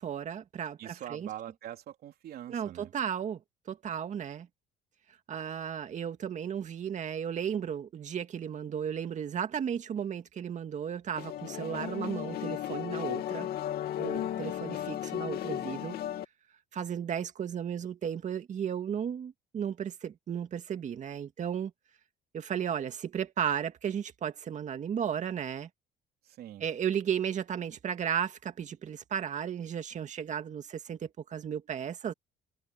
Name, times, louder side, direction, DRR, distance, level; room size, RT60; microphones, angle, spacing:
voice 1, 0.0-1.3 2.5-3.4 3.7-4.5 5.3-13.5 14.0-16.0 16.7-21.7 22.3-25.7 26.6-32.1, right 8 dB, 45° right, 2.2 m, -34 dB
voice 2, 0.8-2.9 26.2-26.7, right 11 dB, 65° right, 3.3 m, -43 dB
sound 1, 11.2-16.2, left 11 dB, 65° left, 2.8 m, -35 dB
cardioid pair, 110°, 17 cm